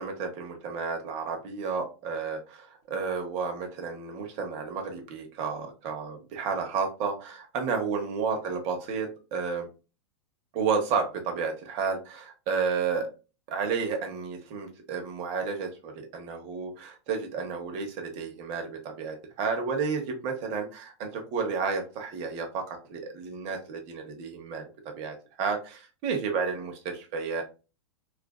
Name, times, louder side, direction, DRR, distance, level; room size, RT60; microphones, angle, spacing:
voice 1, 0.0-9.7 10.5-13.1 13.5-24.6 25.0-27.4, right 5 dB, 45° right, 3 dB, 0.9 m, -31 dB
2.5 x 2.4 x 2.2 m, 0.31 s
hypercardioid pair, 125°, 14 cm